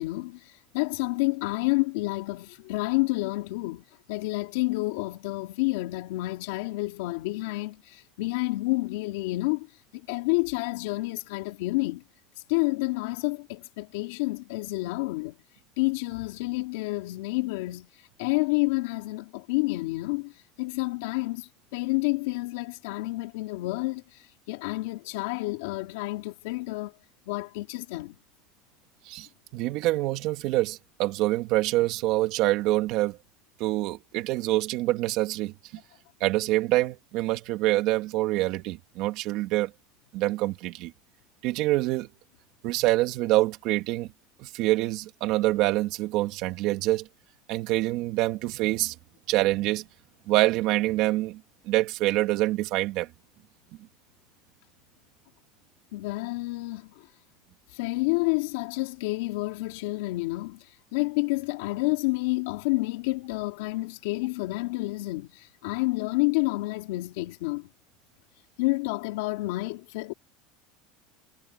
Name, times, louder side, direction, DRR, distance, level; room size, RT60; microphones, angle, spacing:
voice 1, 0.0-12.0 12.5-15.4 15.8-26.9 27.3-28.2 55.9-57.1 57.7-67.7 68.6-70.1, left 22 dB, 80° left, 2.4 m, -29 dB
voice 2, 29.5-33.2 33.6-35.5 36.2-39.7 40.1-40.9 41.4-42.1 42.6-44.1 44.4-47.1 47.5-48.9 49.3-49.8 50.3-53.1, right 18 dB, 50° right, 2.2 m, -26 dB
cardioid pair, 165°, 0 cm